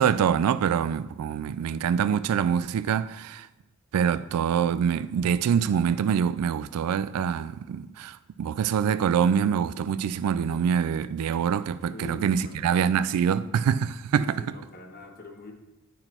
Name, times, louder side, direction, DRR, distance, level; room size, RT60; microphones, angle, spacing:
voice 1, 0.0-3.5 3.9-14.4, right 7 dB, 85° right, 0.3 m, -25 dB
voice 2, 11.9-12.6 14.2-15.5, left 2 dB, 40° left, 1.0 m, -42 dB
9.9 x 5.9 x 4.4 m
head